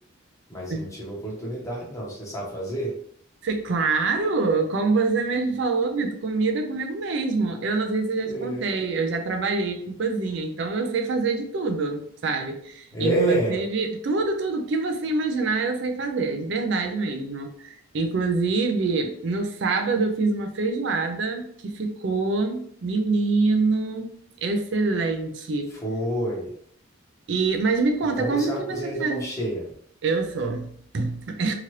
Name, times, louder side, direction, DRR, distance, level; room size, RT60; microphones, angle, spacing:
voice 1, 0.5-3.0 8.2-8.8 12.9-13.6 25.7-26.5 28.2-29.7, right 1 dB, 15° left, -4 dB, 0.9 m, -29 dB
voice 2, 3.4-24.1 24.4-25.7 27.3-29.2 30.0-31.5, right 3 dB, 60° right, 5 dB, 0.4 m, -25 dB
2.9 x 2.4 x 3.1 m, 0.62 s
head